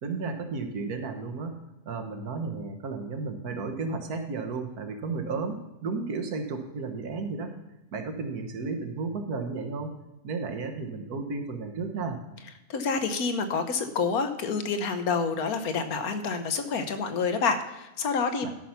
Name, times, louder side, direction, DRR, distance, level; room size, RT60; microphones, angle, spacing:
voice 1, 0.0-1.6 1.8-7.5 7.9-10.0 10.2-12.2 18.4-18.5, right 4 dB, 85° right, 6 dB, 1.7 m, -33 dB
voice 2, 12.7-18.5, left 5 dB, 80° left, 8 dB, 1.4 m, -28 dB
12.5 x 5.6 x 5.8 m, 1.0 s
omnidirectional pair, 1.6 m